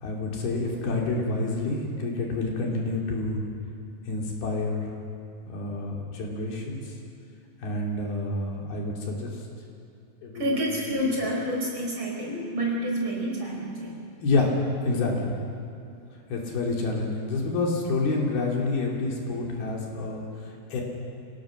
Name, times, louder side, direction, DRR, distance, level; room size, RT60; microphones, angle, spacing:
voice 1, 0.0-3.4 4.1-4.9 5.5-6.8 7.6-9.3 10.2-10.6 14.2-14.5 14.8-15.4 16.3-20.2 20.7-20.8, left 3 dB, 80° left, -2 dB, 4.9 m, -28 dB
voice 2, 10.3-14.0, equal, 30° right, -2 dB, 4.8 m, -28 dB
27.5 x 17.5 x 6.4 m, 2.6 s
omnidirectional pair, 4.3 m